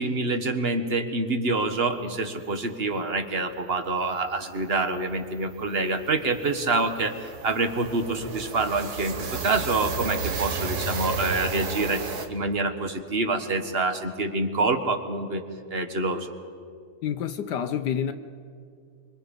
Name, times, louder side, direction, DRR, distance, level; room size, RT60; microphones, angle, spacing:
voice 1, 0.0-12.0 12.3-15.4 15.7-16.3, right 3 dB, 35° right, 7 dB, 1.3 m, -26 dB
sound 1, 3.9-4.0 4.2-4.4 4.7-12.3, right 4 dB, 60° right, 1.9 m, -33 dB
voice 2, 17.0-18.1, left 8 dB, 70° left, 9 dB, 1.3 m, -28 dB
25.5 x 24.5 x 5.3 m, 2.3 s
omnidirectional pair, 1.9 m